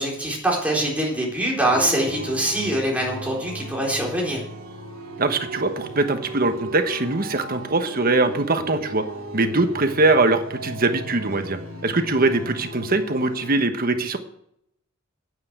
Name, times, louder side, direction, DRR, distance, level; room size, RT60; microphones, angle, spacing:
voice 1, 0.0-4.4, right 1 dB, 5° right, -2 dB, 4.0 m, -23 dB
sound 1, 1.7-13.5, right 1 dB, 90° right, 2.5 m, -36 dB
voice 2, 5.2-9.0 9.3-14.2, right 2 dB, 45° right, 8 dB, 1.2 m, -22 dB
9.6 x 9.5 x 8.0 m, 0.73 s
head